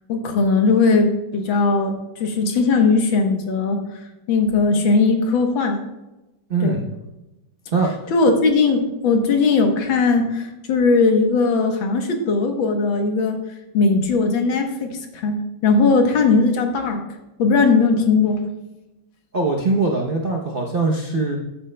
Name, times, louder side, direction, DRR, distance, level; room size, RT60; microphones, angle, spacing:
voice 1, 0.1-1.9 2.2-4.0 4.3-5.8 6.6-6.8 8.1-13.4 13.7-17.0 17.4-18.4, left 4 dB, 80° left, 4 dB, 1.9 m, -18 dB
voice 2, 6.5-6.8 7.7-8.1 19.3-21.4, right 3 dB, 60° right, 0 dB, 0.5 m, -21 dB
13.0 x 9.0 x 2.2 m, 1.0 s
omnidirectional pair, 2.1 m